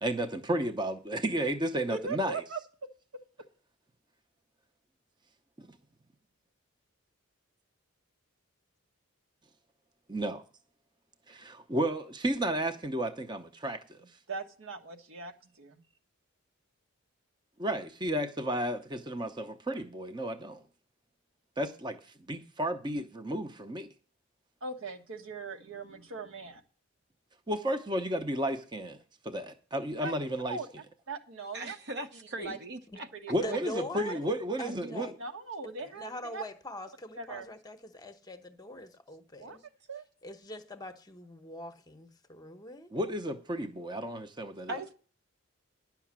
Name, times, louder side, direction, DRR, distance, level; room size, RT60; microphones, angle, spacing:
voice 1, 0.0-2.4 5.6-5.7 10.1-10.4 11.3-14.0 17.6-20.6 21.6-23.9 27.5-29.0 29.2-30.6 33.3-35.1 42.9-44.8, right 1 dB, 20° right, 0.7 m, -33 dB
voice 2, 1.9-2.6 14.3-15.8 24.6-26.6 30.0-30.1 30.5-30.7 31.1-31.8 32.4-32.6 33.1-33.6 35.2-36.4 37.1-37.5 39.4-39.6 39.9-40.0 44.7-44.9, right 4 dB, 70° right, 1.4 m, -40 dB
voice 3, 31.5-33.1 34.6-35.1 44.7-44.9, right 2 dB, 50° right, 0.8 m, -40 dB
voice 4, 33.4-34.2 34.6-35.2 35.6-39.6 40.2-42.9, left 1 dB, 20° left, 0.8 m, -42 dB
10.5 x 5.8 x 7.4 m
head